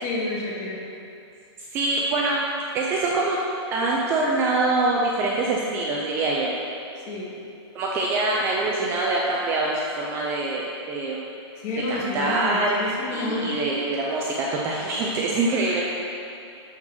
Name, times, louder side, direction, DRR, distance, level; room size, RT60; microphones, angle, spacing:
voice 1, 0.0-0.8 7.1-7.3 11.6-13.5, left 2 dB, 30° left, -4 dB, 2.0 m, -29 dB
voice 2, 1.7-2.4 2.7-3.4 3.7-6.5 7.7-11.2 11.9-15.8, right 2 dB, 15° right, -3 dB, 0.5 m, -24 dB
11.5 x 4.5 x 6.3 m, 2.6 s
hypercardioid pair, 170°, 15 cm